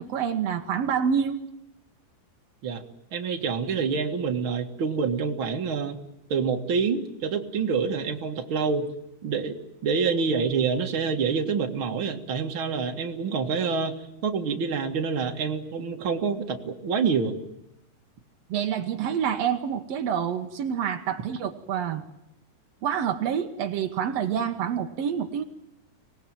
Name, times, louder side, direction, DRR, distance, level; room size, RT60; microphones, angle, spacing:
voice 1, 0.0-1.4 18.5-22.0 22.8-25.4, right 8 dB, 80° right, 5 dB, 1.4 m, -27 dB
voice 2, 3.1-6.0 6.3-8.9 9.2-9.6 9.8-17.4, right 5 dB, 45° right, 3 dB, 1.9 m, -27 dB
25.0 x 19.5 x 9.0 m, 0.85 s
omnidirectional pair, 4.5 m